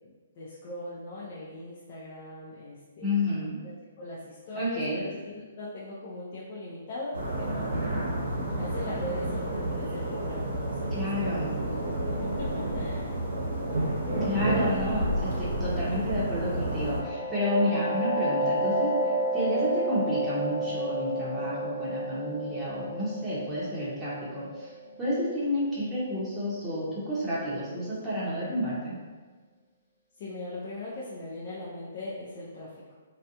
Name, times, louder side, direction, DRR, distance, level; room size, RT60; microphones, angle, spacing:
voice 1, 0.0-3.1 4.0-8.0 8.6-10.9 11.2-13.1 30.2-32.7, left 1 dB, 40° left, -8 dB, 0.5 m, -40 dB
voice 2, 3.0-3.6 4.6-5.1 10.9-11.6 14.2-15.1 15.4-18.9 19.3-24.7 25.0-29.0, left 1 dB, 5° right, -11 dB, 0.7 m, -30 dB
sound 1, 7.1-17.0, right 1 dB, 70° right, 0.9 m, -30 dB
sound 2, 16.6-26.1, right 1 dB, 20° left, 0.9 m, -31 dB
2.4 x 2.1 x 2.8 m, 1.4 s
hypercardioid pair, 155°, 0 cm